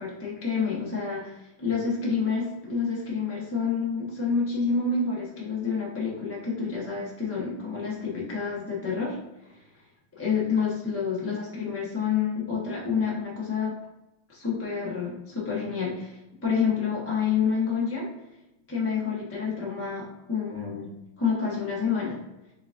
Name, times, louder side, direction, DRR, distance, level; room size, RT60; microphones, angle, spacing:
voice 1, 0.0-9.2 9.4-9.6 10.1-13.7 14.3-18.1 18.7-22.2, left 5 dB, 20° left, -5 dB, 0.3 m, -28 dB
4.9 x 3.5 x 2.5 m, 0.97 s
omnidirectional pair, 2.3 m